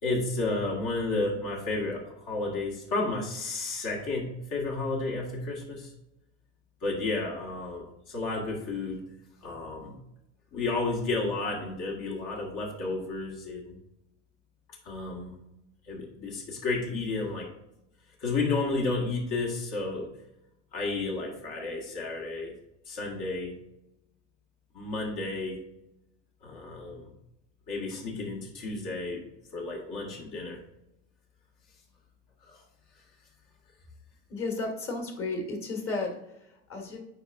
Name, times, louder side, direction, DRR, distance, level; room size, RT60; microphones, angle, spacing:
voice 1, 0.0-5.9 6.8-9.0 9.4-10.0 10.5-13.8 14.8-15.4 15.9-17.5 18.2-20.1 20.7-22.5 22.9-23.5 24.7-25.6 26.4-27.1 27.7-29.2 29.5-30.6 32.5-32.6, left 3 dB, 55° left, -2 dB, 1.8 m, -32 dB
voice 2, 34.3-37.0, left 3 dB, 35° left, 2 dB, 1.7 m, -33 dB
8.6 x 4.7 x 2.6 m, 0.86 s
hypercardioid pair, 90°, 36 cm